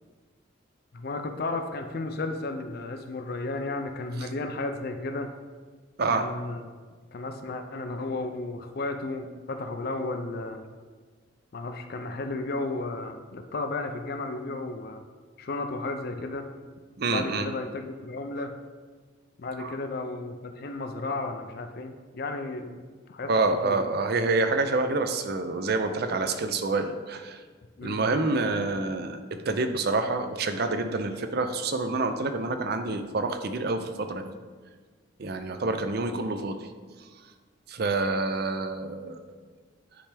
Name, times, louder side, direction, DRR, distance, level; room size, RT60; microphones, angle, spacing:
voice 1, 0.9-5.3 6.1-6.6 7.1-10.6 11.5-15.0 15.4-16.5 17.1-18.5 19.4-22.8 23.1-23.3 23.6-23.9 27.8-28.1, left 2 dB, 50° left, 6 dB, 0.4 m, -33 dB
voice 2, 6.0-6.3 17.0-17.5 19.6-19.7 23.3-27.4 27.8-29.2 29.5-34.3 35.2-36.7 37.7-39.2, right 3 dB, 50° right, 8 dB, 0.5 m, -27 dB
10.0 x 3.3 x 3.3 m, 1.5 s
head